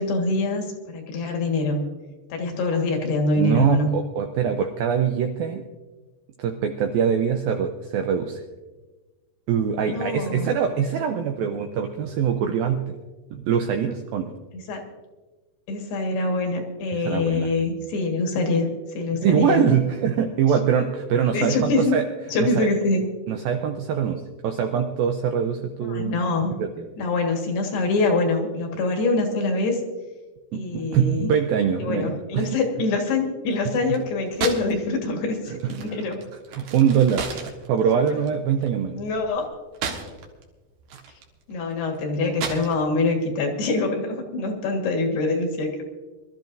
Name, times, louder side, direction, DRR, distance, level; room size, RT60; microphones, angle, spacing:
voice 1, 0.0-1.8 2.3-3.9 9.8-10.5 14.7-14.8 15.7-18.7 18.9-19.7 21.3-22.0 22.3-23.1 25.8-26.5 27.0-29.8 30.5-31.3 31.8-36.2 37.9-38.2 38.9-39.5 41.5-45.8, left 3 dB, 65° left, 2 dB, 3.5 m, -24 dB
voice 2, 3.4-5.6 6.4-8.4 9.5-13.0 13.3-14.3 17.1-17.5 19.2-22.0 22.4-22.7 23.3-26.2 26.6-26.7 30.5-32.6 36.5-37.3 37.7-39.0, right 8 dB, 90° right, 5 dB, 2.1 m, -23 dB
sound 1, 33.6-34.8 35.0-40.4 40.8-43.1, right 6 dB, 65° right, 3.1 m, -34 dB
24.0 x 13.5 x 2.6 m, 1.3 s
omnidirectional pair, 5.1 m